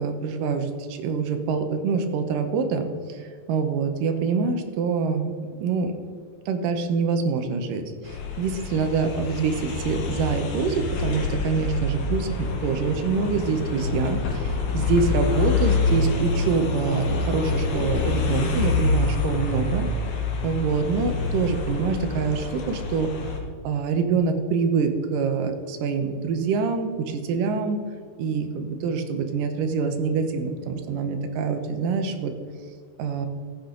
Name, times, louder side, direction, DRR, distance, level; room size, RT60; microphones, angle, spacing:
voice 1, 0.0-5.3 5.6-5.9 6.5-19.9 20.4-23.1 23.6-27.8 28.2-32.3 33.0-33.3, right 5 dB, 70° right, 6 dB, 2.3 m, -25 dB
sound 1, 8.0-23.4, left 4 dB, 60° left, 2.1 m, -26 dB
14.0 x 8.7 x 3.8 m, 2.1 s
omnidirectional pair, 4.3 m